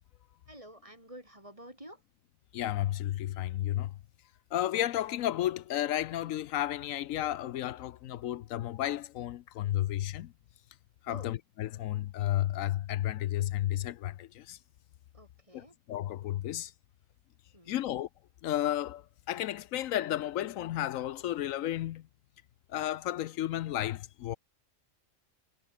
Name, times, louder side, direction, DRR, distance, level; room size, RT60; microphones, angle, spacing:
voice 1, 0.5-2.0 11.1-11.3 15.1-15.8 17.5-17.8, right 1 dB, 25° right, 7.7 m, -50 dB
voice 2, 2.5-3.9 4.5-10.3 11.0-14.6 15.5-16.7 17.7-18.1 18.4-22.0 22.7-24.4, left 13 dB, 80° left, 1.0 m, -32 dB
omnidirectional pair, 1.4 m